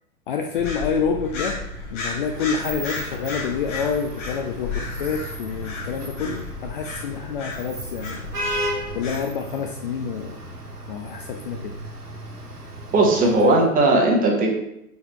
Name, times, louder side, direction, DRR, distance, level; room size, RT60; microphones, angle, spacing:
voice 1, 0.3-1.6 1.9-8.2 8.9-10.4 10.9-11.8 13.1-13.7, left 6 dB, 40° left, 4 dB, 0.4 m, -28 dB
sound 1, 0.5-9.2, left 3 dB, 55° left, 1.8 m, -33 dB
Vehicle horn car horn honking / Traffic noise roadway noise, 2.3-13.4, equal, 90° right, 1.2 m, -35 dB
voice 2, 12.9-14.5, right 2 dB, 20° right, 0 dB, 1.2 m, -17 dB
4.8 x 4.6 x 4.5 m, 0.83 s
figure-of-eight pair, 105°, 45 cm